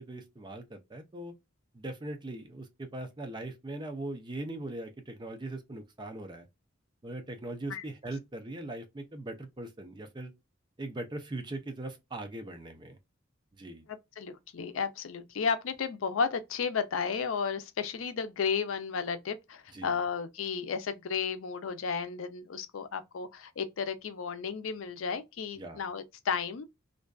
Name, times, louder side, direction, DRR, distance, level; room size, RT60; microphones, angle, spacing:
voice 1, 0.0-1.3 1.7-6.5 7.0-10.3 10.8-13.0 13.5-13.8 19.7-20.0 25.6-25.8, right 2 dB, 25° right, 0.5 m, -40 dB
voice 2, 13.9-26.7, left 6 dB, 85° left, 0.5 m, -33 dB
2.5 x 2.3 x 2.2 m
head